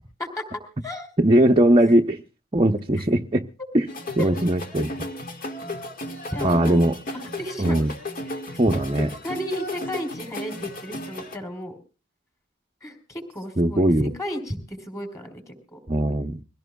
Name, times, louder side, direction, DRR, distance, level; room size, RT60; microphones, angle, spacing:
voice 1, 1.2-2.2 2.5-3.4 3.7-3.8 4.2-4.9 6.4-7.0 7.6-7.9 8.6-9.1 13.6-14.1 15.9-16.4, right 1 dB, 25° right, 1 dB, 0.8 m, -19 dB
sound 1, 3.9-11.4, left 1 dB, 45° left, 1.8 m, -34 dB
voice 2, 6.3-7.8 8.3-8.6 9.2-11.7 12.8-15.8, equal, 15° left, 5 dB, 4.2 m, -34 dB
24.0 x 16.5 x 2.3 m, 0.34 s
head